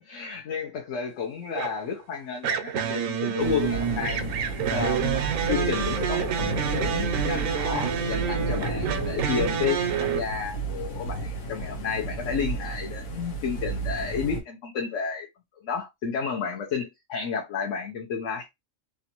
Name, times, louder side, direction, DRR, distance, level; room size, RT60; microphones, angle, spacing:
voice 1, 0.1-4.2 4.7-15.3 15.6-18.5, left 6 dB, 70° left, 1.1 m, -31 dB
sound 1, 1.6-1.9 2.4-10.2, right 8 dB, 80° right, 1.0 m, -28 dB
sound 2, 3.4-14.4, right 3 dB, 90° left, 1.3 m, -32 dB
3.1 x 2.5 x 2.8 m
omnidirectional pair, 1.4 m